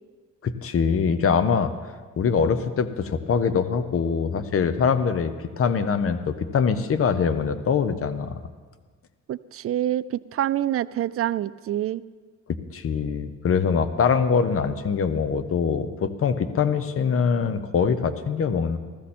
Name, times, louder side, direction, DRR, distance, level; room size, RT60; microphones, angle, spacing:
voice 1, 0.4-1.7 2.2-8.4 12.7-18.8, left 6 dB, 50° left, 12 dB, 0.9 m, -23 dB
voice 2, 9.3-12.0, right 12 dB, 50° right, 16 dB, 0.4 m, -26 dB
14.5 x 14.5 x 4.3 m, 1.4 s
cardioid pair, 90°, 30 cm